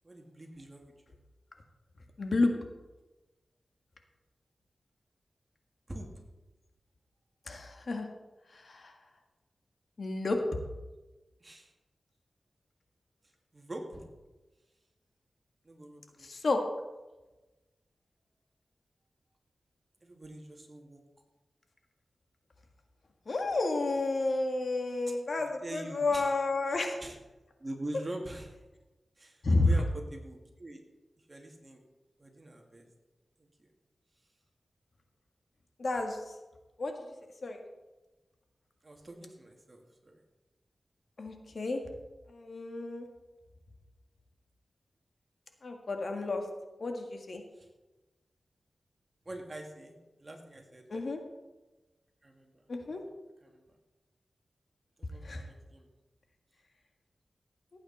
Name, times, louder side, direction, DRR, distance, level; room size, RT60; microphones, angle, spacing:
voice 1, 0.0-1.2 5.9-6.2 11.4-11.7 13.5-14.0 15.6-16.3 20.0-21.0 25.4-26.3 26.7-27.2 27.6-28.6 29.2-30.8 31.3-31.8 32.2-32.9 33.4-33.7 38.8-40.2 47.5-47.7 49.3-50.9 52.2-53.0 53.4-53.6 55.0-55.9, right 1 dB, 35° right, 2 dB, 2.4 m, -45 dB
voice 2, 2.2-2.5 7.5-8.1 8.5-8.9 10.0-10.4 16.2-16.6 23.3-27.0 29.4-29.7 35.8-36.3 36.8-37.0 37.4-37.6 41.2-41.8 42.3-43.1 45.6-46.4 46.8-47.4 50.9-51.2 52.7-53.0 55.2-55.5, left 3 dB, 65° left, 4 dB, 1.8 m, -31 dB
16.5 x 8.8 x 4.3 m, 1.1 s
cardioid pair, 65°, 0 cm